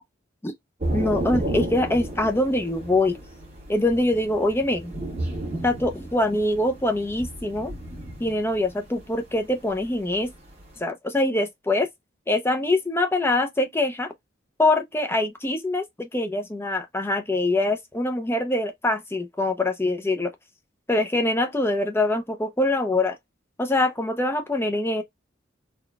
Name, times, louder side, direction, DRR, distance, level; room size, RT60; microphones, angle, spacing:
Thunder / Rain, 0.8-10.8, right 1 dB, 35° right, 1.5 m, -33 dB
voice 1, 0.9-3.2 3.7-4.9 5.6-7.7 8.2-10.3 10.8-11.9 12.3-14.1 14.6-20.3 20.9-23.2 23.6-25.0, left 2 dB, 15° left, 0.5 m, -24 dB
3.9 x 2.3 x 2.2 m
head